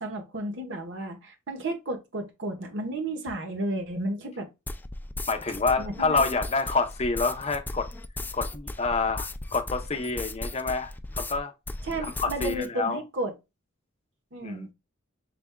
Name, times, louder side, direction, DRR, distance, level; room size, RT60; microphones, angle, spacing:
voice 1, 0.0-4.5 5.8-6.4 11.8-13.3 14.3-14.7, right 1 dB, 60° right, 1.1 m, -33 dB
sound 1, 4.7-11.4 11.7-12.7, left 2 dB, 10° left, 0.3 m, -36 dB
voice 2, 5.3-7.9 8.3-11.5 12.0-13.0 14.4-14.7, left 4 dB, 30° left, 0.7 m, -28 dB
6.0 x 3.4 x 2.2 m
head